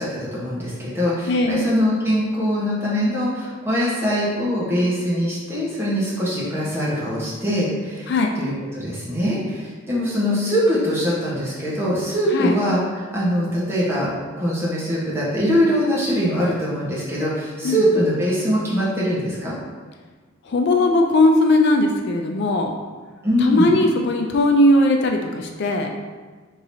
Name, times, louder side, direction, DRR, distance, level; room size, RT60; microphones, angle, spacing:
voice 1, 0.0-14.1 14.4-19.5 23.2-23.7, equal, 15° right, -7 dB, 1.1 m, -22 dB
voice 2, 1.3-1.7 8.1-8.3 12.3-12.5 17.6-17.8 20.5-22.7 23.4-25.9, left 1 dB, 60° left, 3 dB, 0.4 m, -18 dB
4.6 x 3.8 x 2.7 m, 1.4 s
head